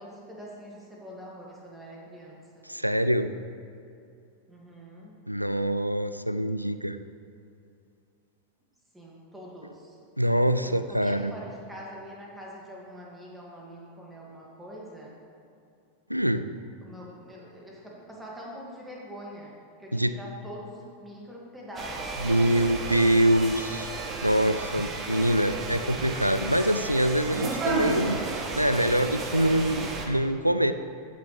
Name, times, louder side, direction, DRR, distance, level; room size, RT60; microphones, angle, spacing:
voice 1, 0.0-2.7 4.5-5.2 8.9-10.0 10.6-15.1 16.8-22.7, equal, 10° right, -4 dB, 2.2 m, -44 dB
voice 2, 2.7-3.3 5.3-7.0 10.2-11.3 16.1-16.5 19.9-20.2 22.2-23.9 24.2-30.7, right 1 dB, 90° right, 11 dB, 0.3 m, -24 dB
sound 1, 21.8-30.1, right 3 dB, 25° right, 1.2 m, -33 dB
14.5 x 6.6 x 3.4 m, 2.5 s
figure-of-eight pair, 90°, 0 cm